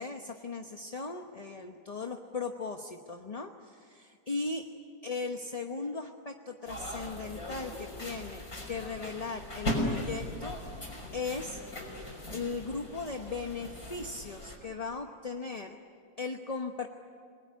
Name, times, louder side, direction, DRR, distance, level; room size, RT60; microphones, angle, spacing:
voice 1, 0.0-4.6 5.0-10.5 10.8-11.6 12.3-15.8 16.2-16.9, left 4 dB, 30° left, 4 dB, 0.9 m, -38 dB
sound 1, 6.6-14.6, left 1 dB, 55° left, 6.4 m, -38 dB
28.0 x 20.5 x 9.7 m, 2.2 s
omnidirectional pair, 1.8 m